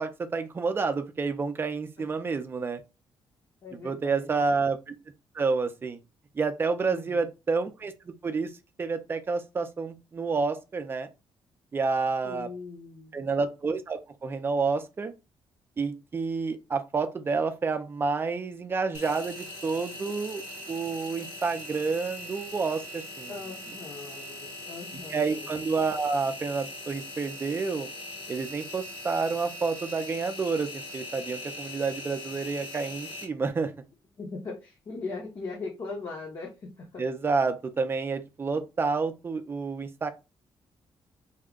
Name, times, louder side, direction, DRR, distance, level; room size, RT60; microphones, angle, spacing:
voice 1, 0.0-2.8 3.8-4.9 5.3-6.0 6.3-8.5 8.8-11.1 11.7-12.5 13.1-15.1 15.8-20.4 20.7-23.3 25.1-27.9 28.3-33.7 37.0-40.1, right 4 dB, 25° right, 0.5 m, -29 dB
voice 2, 3.6-4.4 6.9-7.2 12.2-13.3 23.3-25.5 34.2-37.0, left 3 dB, 40° left, 0.8 m, -40 dB
Engine, 18.9-33.2, left 1 dB, 65° left, 1.3 m, -41 dB
3.5 x 2.2 x 3.7 m
cardioid pair, 165°, 9 cm